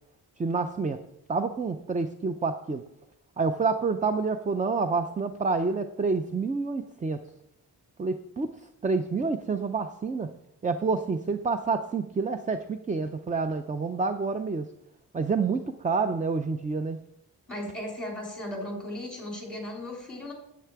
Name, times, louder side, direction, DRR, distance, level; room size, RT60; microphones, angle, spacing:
voice 1, 0.4-1.0 1.3-2.8 3.4-7.2 8.0-8.5 8.8-10.3 10.6-14.7 15.1-17.0, right 4 dB, 20° right, 9 dB, 0.4 m, -28 dB
voice 2, 17.5-20.3, left 1 dB, ahead, -1 dB, 3.4 m, -36 dB
10.0 x 8.5 x 4.6 m, 0.78 s
wide cardioid pair, 155°, 40 cm